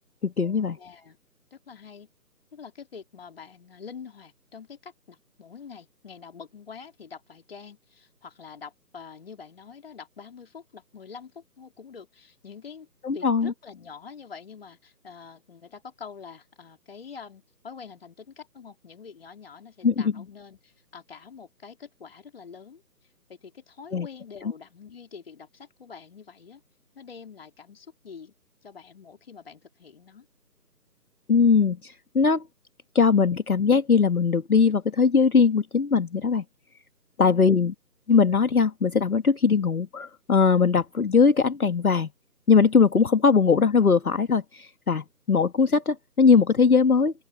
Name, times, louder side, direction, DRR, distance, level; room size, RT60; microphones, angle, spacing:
voice 1, 0.2-0.8 13.0-13.5 19.8-20.1 23.9-24.1 31.3-32.4 32.9-36.4 37.2-37.7 38.1-42.1 42.5-47.1, left 5 dB, 60° left, 1.6 m, -20 dB
voice 2, 0.8-1.2 1.5-2.1 2.5-12.9 13.1-22.8 23.3-26.6 26.9-28.3 28.6-30.3, left 6 dB, 35° left, 4.1 m, -45 dB
open air
figure-of-eight pair, 155°, 50 cm